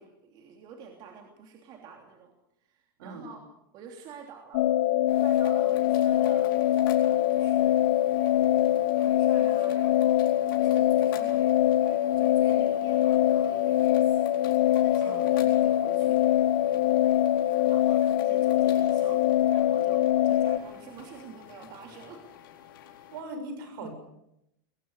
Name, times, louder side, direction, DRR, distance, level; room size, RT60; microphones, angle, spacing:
voice 1, 0.0-2.3 2.6-3.4 3.7-4.7 5.1-6.5 6.9-7.9 8.3-11.5 11.8-16.2 17.4-22.3, right 6 dB, 35° right, 2 dB, 3.1 m, -48 dB
sound 1, 4.5-20.6, left 12 dB, 55° left, 1.1 m, -23 dB
sound 2, 5.1-23.2, left 10 dB, 75° left, 4.1 m, -49 dB
voice 2, 23.1-23.9, right 2 dB, 70° right, 7 dB, 6.9 m, -39 dB
21.5 x 17.5 x 8.1 m, 0.83 s
supercardioid pair, 155°, 12 cm